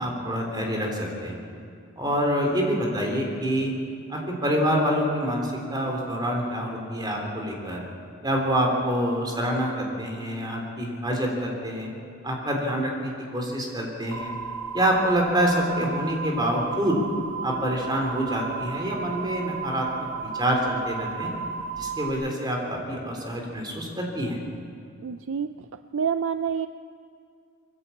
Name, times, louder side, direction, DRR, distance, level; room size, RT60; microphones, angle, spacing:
voice 1, 0.0-1.3 2.0-3.7 4.1-7.8 8.2-11.9 12.2-14.3 14.7-17.0 17.4-21.3 21.8-24.4, equal, 20° right, 0 dB, 3.5 m, -26 dB
sound 1, 14.1-22.1, right 6 dB, 80° right, 1.9 m, -34 dB
voice 2, 25.0-26.7, right 7 dB, 60° right, 10 dB, 0.5 m, -28 dB
22.0 x 15.0 x 8.5 m, 2.3 s
head